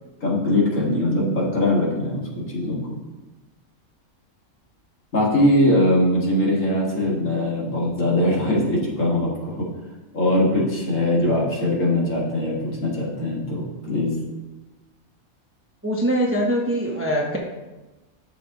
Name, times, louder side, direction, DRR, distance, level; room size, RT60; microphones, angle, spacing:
voice 1, 0.2-3.0 5.1-9.7 10.1-14.1, left 1 dB, 65° left, -4 dB, 2.4 m, -21 dB
voice 2, 15.8-17.4, equal, 10° right, -1 dB, 0.7 m, -22 dB
10.5 x 6.7 x 3.0 m, 1.1 s
omnidirectional pair, 1.5 m